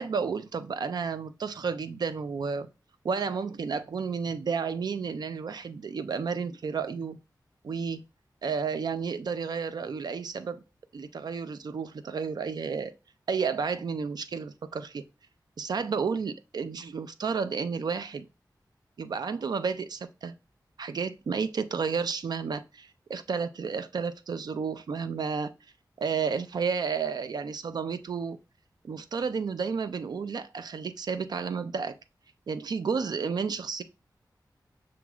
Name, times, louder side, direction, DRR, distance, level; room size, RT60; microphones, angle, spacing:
voice 1, 0.0-2.7 3.0-7.2 7.6-8.0 8.4-10.6 10.9-12.9 13.3-15.0 15.6-18.3 19.0-20.3 20.8-25.5 26.0-28.4 28.8-32.0 32.5-33.8, right 5 dB, 65° right, 0.4 m, -31 dB
6.0 x 3.0 x 2.3 m
wide cardioid pair, 110°, 7 cm